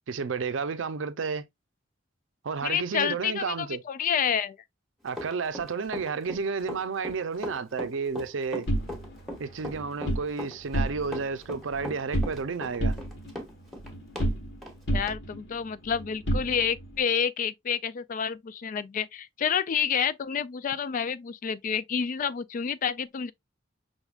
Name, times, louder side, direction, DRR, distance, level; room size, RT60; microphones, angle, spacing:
voice 1, 0.1-1.4 2.4-3.8 5.0-8.7 9.4-13.0, right 5 dB, 90° right, 0.5 m, -31 dB
voice 2, 2.6-4.6 14.9-23.3, left 7 dB, 45° left, 0.3 m, -29 dB
Run, 5.1-14.3 14.6-14.7 15.1-15.2, left 1 dB, ahead, 1.1 m, -38 dB
sound 1, 8.7-10.3 10.6-11.3 11.6-12.5 12.8-14.6 14.9-17.0, right 1 dB, 65° left, 1.3 m, -31 dB
5.3 x 3.5 x 2.4 m
head